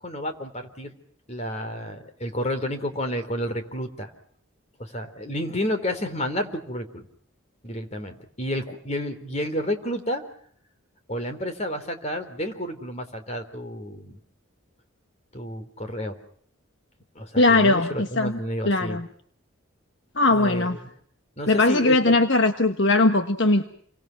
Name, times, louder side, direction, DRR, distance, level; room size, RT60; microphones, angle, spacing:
voice 1, 0.0-0.9 1.3-4.1 4.8-7.1 7.6-10.2 11.1-14.2 15.3-16.1 17.2-19.0 20.3-20.8 21.4-22.1, equal, 30° left, 7 dB, 3.8 m, -30 dB
voice 2, 17.4-18.4 18.6-19.1 20.2-20.8 21.5-23.7, left 2 dB, 55° left, 8 dB, 1.3 m, -20 dB
29.5 x 24.0 x 6.0 m, 0.63 s
head